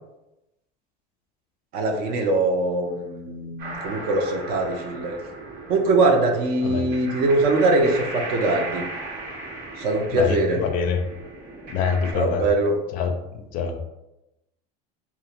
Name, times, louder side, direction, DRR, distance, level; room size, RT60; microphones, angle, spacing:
voice 1, 1.7-5.2 5.7-8.9 9.8-10.6 12.1-12.8, right 2 dB, 50° right, 4 dB, 0.5 m, -22 dB
sound 1, 3.6-12.1, right 2 dB, 90° right, 1.2 m, -36 dB
voice 2, 10.1-11.0 11.7-12.4 12.9-13.8, left 6 dB, 45° left, 6 dB, 0.4 m, -25 dB
2.5 x 2.4 x 2.9 m, 0.93 s
supercardioid pair, 140°, 19 cm